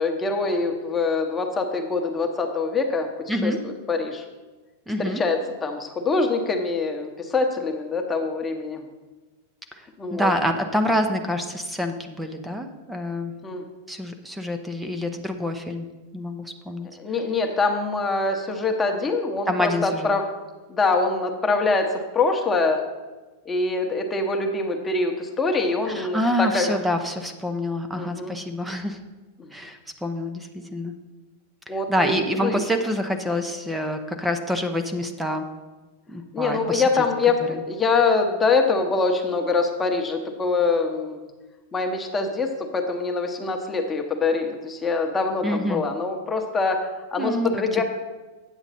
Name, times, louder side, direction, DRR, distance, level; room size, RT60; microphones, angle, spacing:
voice 1, 0.0-4.2 5.0-8.8 10.0-10.3 13.4-13.6 17.0-20.2 20.7-22.8 23.4-26.8 27.9-28.3 31.7-32.6 36.3-41.2 41.7-47.8, left 3 dB, 20° left, 3 dB, 1.1 m, -24 dB
voice 2, 3.3-3.6 4.9-5.2 9.7-13.3 13.9-15.9 16.1-16.9 19.5-20.2 25.9-29.0 29.5-30.9 31.7-35.5 36.1-36.8 37.5-37.6 45.4-45.8 47.2-47.5 47.8-47.9, left 1 dB, 5° right, 6 dB, 0.8 m, -27 dB
9.1 x 7.0 x 4.3 m, 1.2 s
hypercardioid pair, 105°, 0 cm